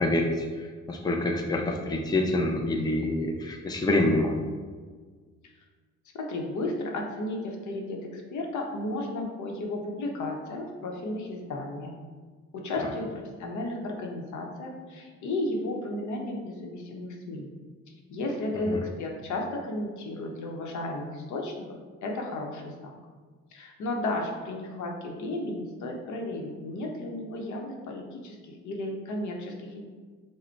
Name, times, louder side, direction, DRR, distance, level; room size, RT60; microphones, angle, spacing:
voice 1, 0.0-4.3 12.8-12.9 18.6-18.8, left 1 dB, 15° left, 2 dB, 0.5 m, -27 dB
voice 2, 6.1-11.9 12.5-17.5 18.1-22.9 23.5-29.8, left 2 dB, 70° left, 1 dB, 0.8 m, -34 dB
4.9 x 2.2 x 4.4 m, 1.5 s
cardioid pair, 90°, 30 cm